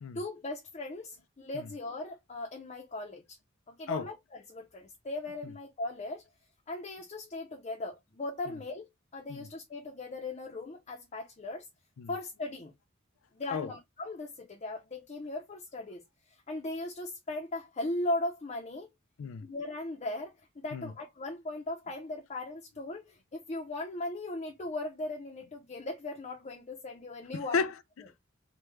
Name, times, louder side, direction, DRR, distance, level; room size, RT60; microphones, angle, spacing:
voice 1, 0.1-3.2 3.7-6.2 6.7-11.7 12.1-12.7 13.3-16.0 16.5-18.9 19.4-27.6, left 2 dB, 35° left, 0.6 m, -38 dB
voice 2, 27.3-28.2, left 5 dB, 80° left, 0.4 m, -34 dB
3.4 x 2.2 x 3.0 m
head